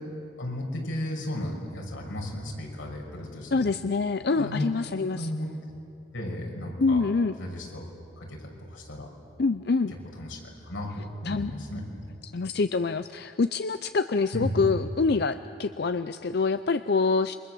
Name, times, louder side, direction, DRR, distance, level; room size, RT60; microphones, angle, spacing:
voice 1, 0.4-3.6 4.4-4.7 5.1-5.5 6.1-7.0 7.4-7.9 8.2-9.1 9.9-11.8 14.3-14.8, left 1 dB, 90° left, 0 dB, 6.1 m, -34 dB
voice 2, 3.5-5.3 6.8-7.3 9.4-9.9 11.3-11.5 12.2-17.4, left 4 dB, 55° left, 11 dB, 0.5 m, -26 dB
28.5 x 24.0 x 7.8 m, 2.8 s
head